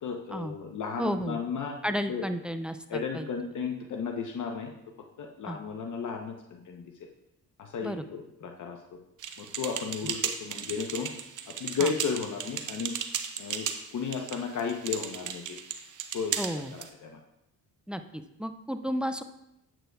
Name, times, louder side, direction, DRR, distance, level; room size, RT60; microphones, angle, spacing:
voice 1, 0.0-1.8 2.1-2.2 2.9-4.7 5.2-6.8 7.6-8.8 9.4-11.1 11.6-12.9 13.4-13.7 13.9-15.6 16.1-17.2, left 5 dB, 50° left, 3 dB, 0.8 m, -34 dB
voice 2, 1.0-1.4 1.8-3.3 5.5-5.6 7.8-8.0 11.8-11.9 16.4-16.7 17.9-19.2, equal, 5° right, 9 dB, 0.3 m, -33 dB
sound 1, 9.2-16.9, right 8 dB, 55° right, 0.8 m, -36 dB
8.8 x 7.9 x 2.3 m, 0.84 s
cardioid pair, 85°, 39 cm